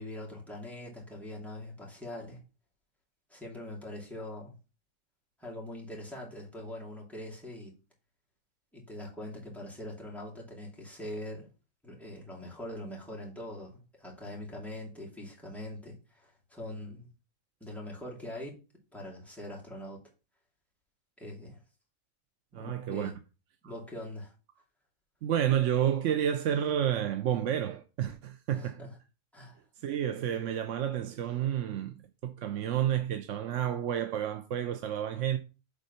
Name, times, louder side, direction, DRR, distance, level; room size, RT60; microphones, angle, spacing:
voice 1, 0.0-2.4 3.3-4.5 5.4-7.7 8.7-11.5 11.8-17.1 17.6-18.6 18.9-20.0 21.2-21.6 22.5-23.1 23.6-24.3 28.5-29.0 29.3-29.6, left 1 dB, ahead, 2.5 m, -42 dB
voice 2, 22.5-23.1 25.2-28.8 29.8-31.9 32.2-35.4, right 10 dB, 70° right, 0.9 m, -30 dB
7.2 x 4.0 x 5.4 m
omnidirectional pair, 1.4 m